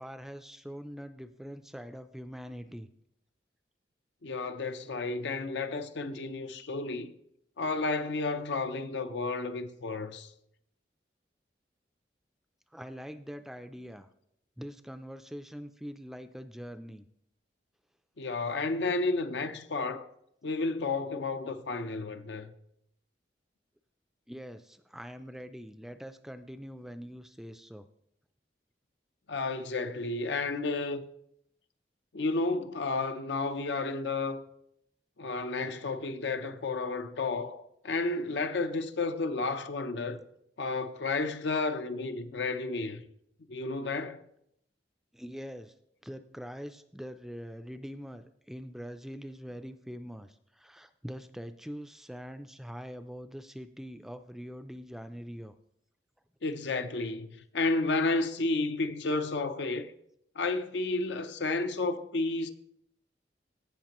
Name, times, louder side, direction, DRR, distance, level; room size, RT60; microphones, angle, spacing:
voice 1, 0.0-2.9 12.7-14.1 14.6-17.1 24.3-27.9 45.1-45.7 46.0-55.5, equal, ahead, 0.3 m, -43 dB
voice 2, 4.2-7.1 7.6-10.3 18.2-20.1 20.4-22.5 29.3-31.0 32.1-34.4 35.2-40.2 40.6-43.0 43.5-44.2 56.4-59.9 60.4-62.5, left 3 dB, 85° left, 0.6 m, -32 dB
16.0 x 5.8 x 3.0 m
head